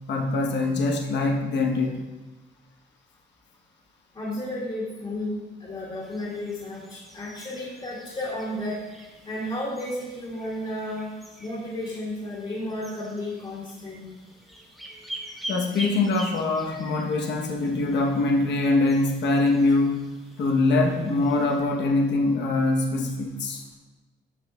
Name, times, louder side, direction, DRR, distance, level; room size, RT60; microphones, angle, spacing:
voice 1, 0.1-2.0 15.5-20.0 20.4-23.6, left 2 dB, 60° left, 2 dB, 1.0 m, -23 dB
voice 2, 4.1-8.8 9.3-11.1 11.4-14.1 16.7-16.9, left 1 dB, 25° left, -7 dB, 2.1 m, -33 dB
sound 1, 6.0-21.6, right 1 dB, ahead, 1.3 m, -44 dB
8.5 x 5.9 x 2.3 m, 1.2 s
cardioid pair, 90°, 20 cm